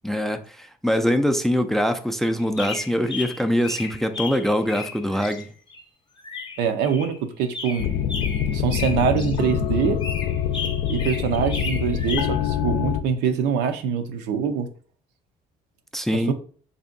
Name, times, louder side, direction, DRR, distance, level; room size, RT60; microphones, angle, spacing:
voice 1, 0.0-5.5 15.9-16.3, equal, ahead, 0.3 m, -23 dB
sound 1, 2.4-5.8 6.2-7.2 7.4-9.4 9.8-12.4, left 4 dB, 25° left, 0.7 m, -34 dB
voice 2, 6.6-7.9 8.5-10.0 10.9-14.7 16.1-16.3, right 7 dB, 90° right, 0.6 m, -24 dB
sound 2, 7.8-13.0, left 9 dB, 80° left, 0.5 m, -25 dB
3.4 x 2.7 x 3.8 m
cardioid pair, 110°, 17 cm